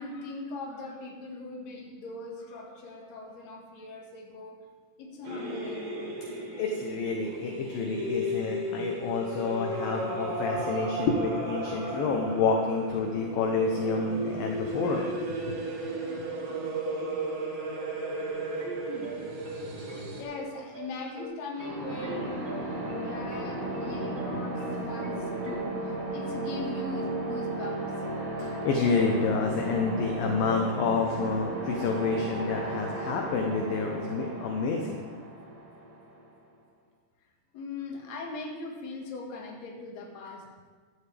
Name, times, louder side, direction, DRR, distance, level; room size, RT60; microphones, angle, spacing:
voice 1, 0.0-4.6 5.0-5.9 9.2-9.5 10.6-10.9 14.8-15.2 16.0-16.3 17.3-17.5 17.8-18.0 18.4-19.2 19.8-27.9 37.5-40.5, left 2 dB, 50° left, 0 dB, 2.4 m, -40 dB
sound 1, 5.2-20.2, right 1 dB, 90° right, 4.8 m, -34 dB
voice 2, 6.6-15.1 15.5-15.6 28.4-35.0, left 4 dB, 70° left, 2 dB, 2.3 m, -29 dB
sound 2, 18.2-25.5, equal, 35° right, 3.1 m, -43 dB
sound 3, 21.5-36.3, right 2 dB, 60° right, 4.9 m, -34 dB
15.0 x 11.5 x 3.4 m, 1.5 s
omnidirectional pair, 4.8 m